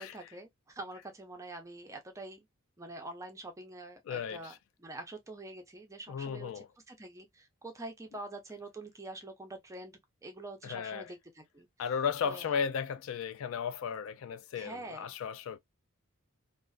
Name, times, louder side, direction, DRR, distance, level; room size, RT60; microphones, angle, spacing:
voice 1, 0.0-2.4 2.8-4.5 4.8-11.7 12.2-12.4 14.6-15.1, right 2 dB, 15° right, 0.5 m, -45 dB
voice 2, 4.1-4.6 6.1-6.7 10.6-11.1 11.8-15.6, left 7 dB, 70° left, 0.3 m, -35 dB
2.4 x 2.3 x 2.3 m
head